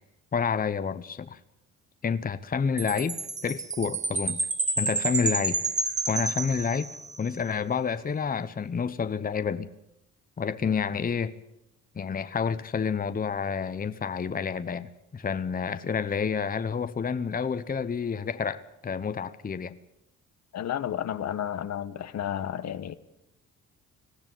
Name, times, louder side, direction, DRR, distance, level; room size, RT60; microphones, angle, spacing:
voice 1, 0.3-1.4 2.0-4.4 4.8-5.6 6.1-6.9 7.2-9.7 10.4-11.3 12.0-19.8, left 6 dB, 30° left, 12 dB, 0.9 m, -29 dB
Chime, 2.8-7.3, right 3 dB, 25° right, 2.1 m, -30 dB
voice 2, 20.5-23.0, left 10 dB, 60° left, 12 dB, 1.2 m, -32 dB
20.0 x 15.0 x 9.1 m, 0.82 s
cardioid pair, 90°, 30 cm